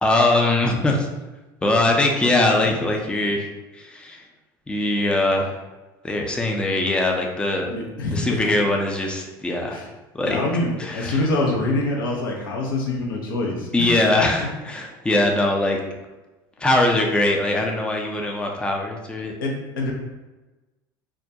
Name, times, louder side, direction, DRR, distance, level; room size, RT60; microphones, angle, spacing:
voice 1, 0.0-1.1 1.6-3.5 3.7-4.2 4.7-5.6 6.0-7.7 8.1-9.8 10.1-10.4 10.8-11.3 13.7-15.8 16.6-19.3, left 2 dB, 10° left, 1 dB, 0.4 m, -21 dB
voice 2, 7.7-8.5 9.7-9.9 10.2-14.5 19.4-19.9, left 2 dB, 85° left, -1 dB, 0.5 m, -25 dB
2.3 x 2.1 x 2.6 m, 1.1 s
hypercardioid pair, 80°, 11 cm